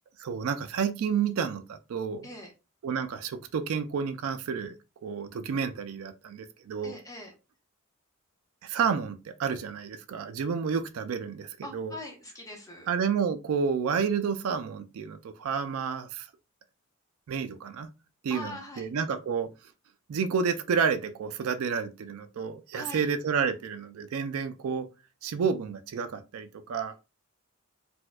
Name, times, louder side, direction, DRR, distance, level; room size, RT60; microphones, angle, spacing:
voice 1, 0.2-2.3 2.8-4.7 5.0-7.0 8.6-11.9 12.9-16.3 17.3-17.9 18.2-19.5 20.1-24.9 25.2-26.9, right 6 dB, 80° right, 0.4 m, -30 dB
voice 2, 6.8-7.3 11.6-12.9 18.3-18.9 22.7-23.1, left 1 dB, 15° left, 0.9 m, -42 dB
4.3 x 2.2 x 2.3 m
head